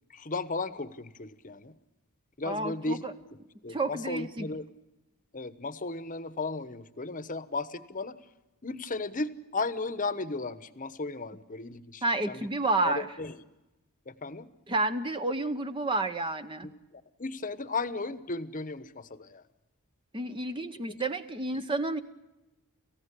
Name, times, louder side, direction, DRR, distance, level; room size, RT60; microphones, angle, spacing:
voice 1, 0.1-1.8 2.4-4.7 5.3-8.2 8.6-12.5 12.8-13.4 14.1-14.5 16.6-19.4 20.9-21.0 21.5-21.7, left 3 dB, 35° left, 14 dB, 1.1 m, -35 dB
voice 2, 2.5-3.0 3.7-4.5 12.0-13.1 14.7-16.7 20.1-22.0, right 2 dB, 20° right, 9 dB, 0.9 m, -30 dB
29.0 x 15.5 x 8.4 m, 1.0 s
head